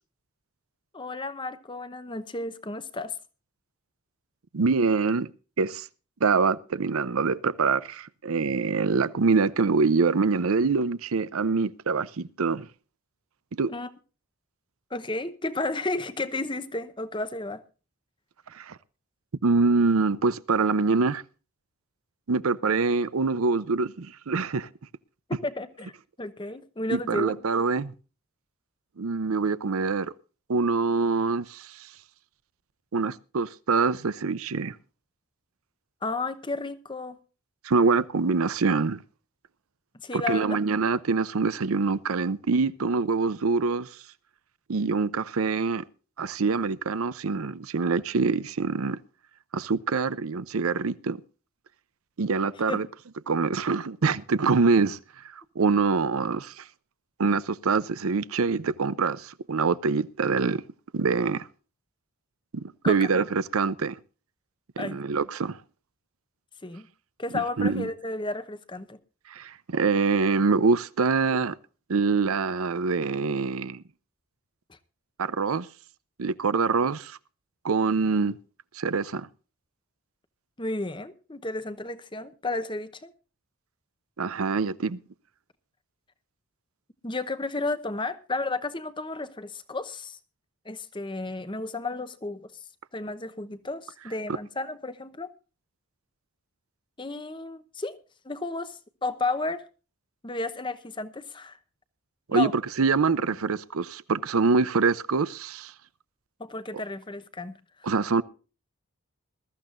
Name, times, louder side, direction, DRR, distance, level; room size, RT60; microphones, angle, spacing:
voice 1, 0.9-3.1 13.7-13.9 14.9-17.6 25.4-25.9 26.2-27.4 36.0-37.2 39.9-40.6 52.7-52.8 62.8-63.1 64.8-65.0 66.6-66.9 67.2-69.0 74.7-74.8 80.6-83.1 87.0-90.2 90.6-92.6 92.9-95.3 97.0-98.0 98.2-99.6 100.2-101.6 102.3-102.5 106.4-107.9, left 2 dB, 20° left, 0.9 m, -33 dB
voice 2, 4.5-5.3 5.6-5.9 6.2-12.7 13.6-13.7 18.5-18.8 19.4-21.2 22.3-24.7 26.9-27.9 29.0-30.1 30.5-31.8 32.9-34.8 37.6-39.0 40.1-43.9 44.7-45.8 46.2-49.0 49.5-51.2 52.2-52.9 53.3-55.0 55.6-56.6 57.2-60.6 60.9-61.5 62.5-64.0 64.8-65.6 67.6-67.9 69.3-71.6 71.9-73.8 75.2-75.7 76.2-77.2 77.6-78.4 78.8-79.3 84.2-85.0 102.3-105.7 107.8-108.2, right 4 dB, 70° right, 0.6 m, -25 dB
21.0 x 13.5 x 2.5 m
head